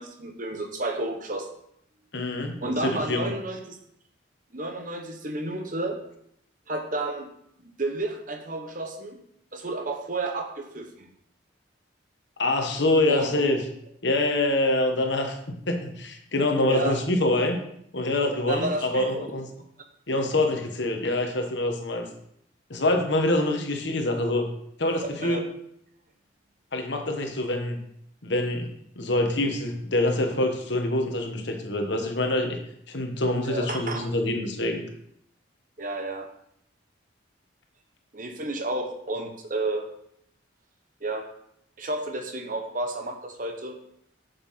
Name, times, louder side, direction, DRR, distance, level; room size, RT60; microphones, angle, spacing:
voice 1, 0.0-1.5 2.6-3.8 4.5-6.0 6.7-7.3 7.8-9.2 9.5-11.1 13.1-13.3 16.6-17.0 18.5-19.3 25.2-25.4 33.4-34.1 35.8-36.3 38.1-39.9 41.0-41.3 41.8-43.8, right 2 dB, 40° right, 5 dB, 1.0 m, -31 dB
voice 2, 2.1-3.3 12.4-13.6 14.0-17.6 17.9-19.5 20.1-22.1 22.7-24.5 24.8-25.4 26.7-27.8 28.2-28.7 29.0-32.6 32.9-34.8, left 1 dB, 65° left, 4 dB, 1.3 m, -25 dB
7.6 x 7.0 x 4.2 m, 0.73 s
head